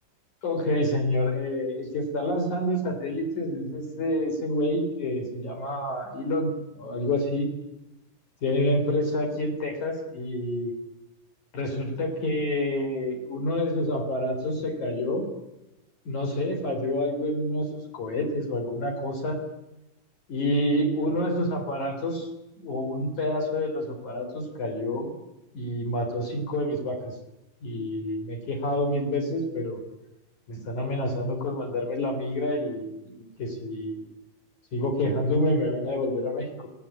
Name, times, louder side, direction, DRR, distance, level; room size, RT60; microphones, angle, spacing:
voice 1, 0.4-7.5 8.4-10.7 11.5-15.3 16.1-19.4 20.3-22.3 22.6-25.1 25.5-27.1 27.6-29.8 30.5-34.0 34.7-36.7, left 1 dB, 40° left, 3 dB, 4.5 m, -28 dB
25.5 x 18.0 x 8.7 m, 0.95 s
omnidirectional pair, 5.4 m